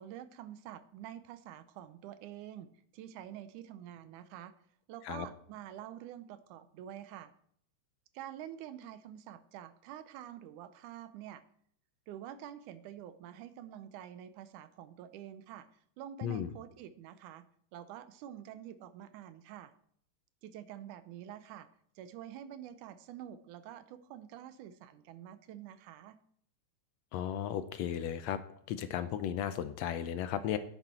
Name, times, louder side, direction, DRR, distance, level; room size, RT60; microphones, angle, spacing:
voice 1, 0.0-4.5 4.9-7.3 8.1-11.4 12.1-15.7 16.0-17.5 17.7-19.7 20.4-21.7 22.0-26.2, right 11 dB, 90° right, 12 dB, 2.2 m, -47 dB
voice 2, 27.1-28.4 28.7-30.6, left 10 dB, 75° left, 11 dB, 1.7 m, -35 dB
10.0 x 8.9 x 4.3 m, 0.65 s
omnidirectional pair, 3.4 m